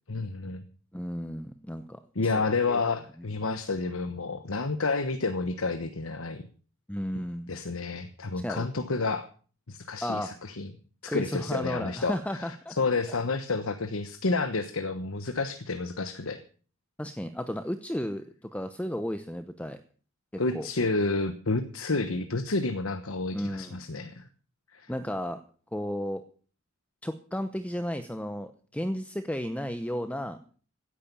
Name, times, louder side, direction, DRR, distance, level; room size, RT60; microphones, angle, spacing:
voice 1, 0.1-0.6 2.1-6.5 7.5-9.3 9.7-10.7 11.0-16.4 20.4-24.3 24.7-24.9, left 3 dB, 85° left, 9 dB, 1.2 m, -30 dB
voice 2, 0.9-2.3 2.7-2.8 6.9-7.5 8.4-8.6 10.0-10.3 11.1-12.8 17.0-19.8 20.3-20.7 23.3-23.8 24.9-25.4 25.7-26.2 27.0-30.4, equal, 5° left, 10 dB, 0.8 m, -33 dB
16.5 x 10.0 x 7.0 m, 0.42 s
head